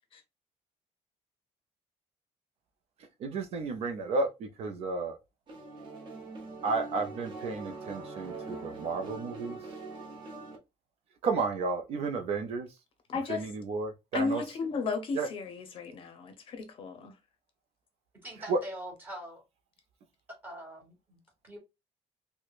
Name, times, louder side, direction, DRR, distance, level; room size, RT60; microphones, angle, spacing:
voice 1, 3.2-5.2 6.6-9.6 11.2-12.7 13.3-14.4 15.2-15.3 18.5-18.6, right 3 dB, 55° right, 0.5 m, -32 dB
sound 1, 5.5-10.6, right 3 dB, 40° right, 0.9 m, -43 dB
voice 2, 13.1-13.5 14.1-17.1, left 4 dB, 45° left, 0.6 m, -34 dB
voice 3, 18.2-19.4 20.4-21.6, right 1 dB, 15° right, 1.4 m, -44 dB
4.7 x 2.1 x 2.3 m
cardioid pair, 170°, 12 cm